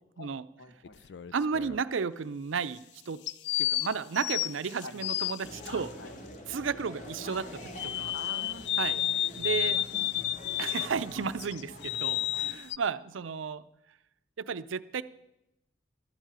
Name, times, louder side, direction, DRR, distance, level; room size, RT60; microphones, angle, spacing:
voice 1, 0.6-1.0 3.9-4.0 4.8-5.1 5.7-6.1 8.1-8.7 9.7-10.3 10.8-11.1 12.3-12.6, left 2 dB, 80° left, 7 dB, 1.4 m, -47 dB
sound 1, 0.8-1.8 3.3-5.7 7.8-11.0 11.4-12.8, left 14 dB, 60° left, 0.3 m, -31 dB
voice 2, 1.3-3.2 3.6-5.9 6.5-8.1 8.8-9.0 9.4-9.8 10.6-13.6 14.4-15.0, right 6 dB, 90° right, 14 dB, 0.5 m, -33 dB
sound 2, 5.4-12.6, equal, 40° left, 1.9 m, -45 dB
12.0 x 7.4 x 9.1 m, 0.90 s
head